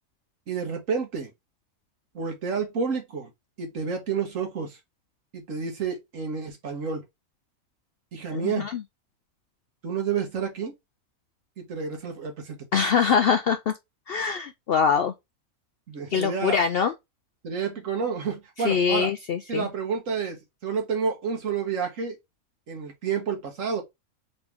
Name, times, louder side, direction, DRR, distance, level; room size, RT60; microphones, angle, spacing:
voice 1, 0.5-1.3 2.1-3.3 3.6-4.8 5.3-7.0 8.1-8.7 9.8-10.7 11.6-12.9 15.9-16.6 17.4-19.1 19.5-22.2 22.7-23.8, right 6 dB, 70° right, 1.6 m, -30 dB
voice 2, 8.3-8.8 12.7-13.7 14.1-15.1 16.1-16.9 18.6-19.7, left 6 dB, 65° left, 0.6 m, -23 dB
4.1 x 3.0 x 3.5 m
omnidirectional pair, 1.4 m